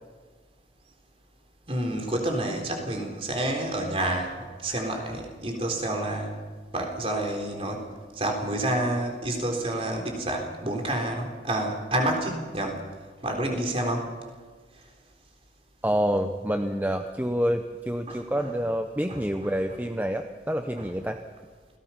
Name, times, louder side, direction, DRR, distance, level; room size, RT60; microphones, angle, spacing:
voice 1, 1.7-6.4 6.7-7.9 8.2-12.8 13.2-14.1 18.1-18.5 19.1-19.5 20.8-20.9, right 1 dB, 35° right, 3 dB, 3.7 m, -29 dB
voice 2, 15.8-21.2, equal, 10° right, 6 dB, 0.8 m, -27 dB
27.5 x 18.0 x 5.8 m, 1.5 s
head